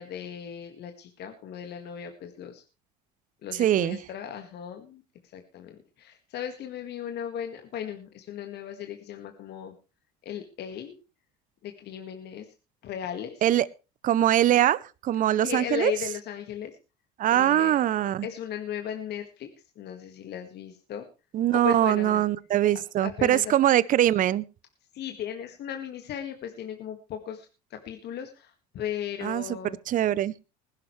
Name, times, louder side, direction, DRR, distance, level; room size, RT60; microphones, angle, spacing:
voice 1, 0.0-2.6 3.4-5.0 5.3-9.7 10.2-10.9 11.6-12.5 12.8-13.4 15.4-16.7 17.3-17.7 18.2-19.5 19.8-21.1 21.5-22.3 23.0-23.5 24.9-29.8, left 9 dB, 55° left, 5 dB, 1.9 m, -36 dB
voice 2, 3.5-4.0 13.4-13.7 14.0-15.9 17.2-18.3 21.3-24.4 29.2-29.4 29.9-30.3, right 12 dB, 40° right, 20 dB, 0.6 m, -22 dB
20.0 x 11.5 x 3.2 m, 0.30 s
hypercardioid pair, 80°, 21 cm